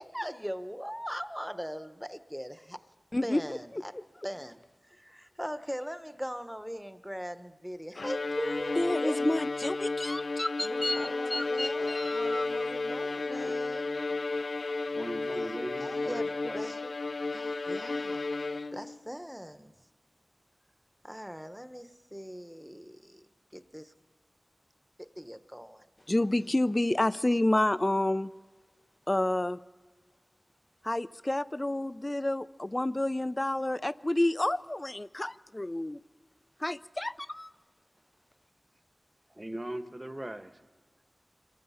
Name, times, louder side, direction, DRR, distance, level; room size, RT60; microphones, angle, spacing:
voice 1, 0.0-2.8 3.2-3.9 4.2-4.6 4.9-9.2 10.6-13.9 15.5-16.3 16.5-16.9 17.3-18.3 18.7-19.7 21.0-23.9 25.0-25.8, equal, 5° right, 1.1 m, -40 dB
voice 2, 3.1-3.6 8.8-12.5 26.1-28.3 29.1-29.6 30.8-36.0 36.6-37.5, left 1 dB, 30° left, 0.6 m, -29 dB
Bowed string instrument, 8.0-19.0, left 3 dB, 80° left, 0.7 m, -33 dB
voice 3, 14.9-16.8 39.3-40.6, right 1 dB, 30° right, 1.4 m, -39 dB
26.5 x 23.0 x 5.7 m
wide cardioid pair, 40°, 0 cm